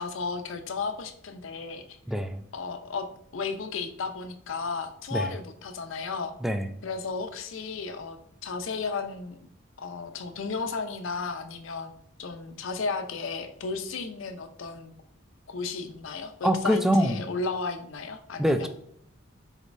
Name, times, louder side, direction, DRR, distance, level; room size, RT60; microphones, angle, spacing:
voice 1, 0.0-2.0 2.5-6.3 6.8-9.4 9.8-11.9 12.2-14.9 15.5-18.7, left 4 dB, 70° left, 8 dB, 0.5 m, -34 dB
voice 2, 2.1-2.4 5.1-5.3 6.4-6.7 16.4-17.2 18.4-18.7, equal, ahead, 8 dB, 0.3 m, -24 dB
5.0 x 4.2 x 2.6 m, 0.67 s
head